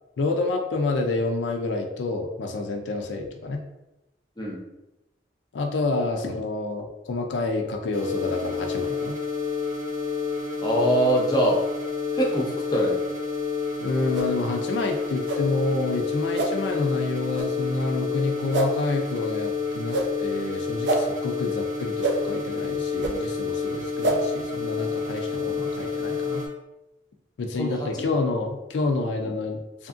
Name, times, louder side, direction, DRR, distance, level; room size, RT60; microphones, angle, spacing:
voice 1, 0.2-3.6 5.5-9.2 13.8-26.4 27.4-29.9, left 3 dB, 85° left, 3 dB, 0.4 m, -28 dB
sound 1, 7.9-26.5, left 5 dB, 45° right, 0.7 m, -29 dB
voice 2, 10.6-11.6 12.1-13.0 27.6-27.9, right 1 dB, 20° left, -2 dB, 0.4 m, -23 dB
sound 2, 14.1-14.3 15.2-15.4 16.3-16.5 17.3-17.5 18.5-18.7 19.9-20.1 20.8-21.0 22.0-22.2 23.0-23.1 24.0-24.2, right 2 dB, 80° right, 0.4 m, -25 dB
2.7 x 2.5 x 2.4 m, 0.95 s
head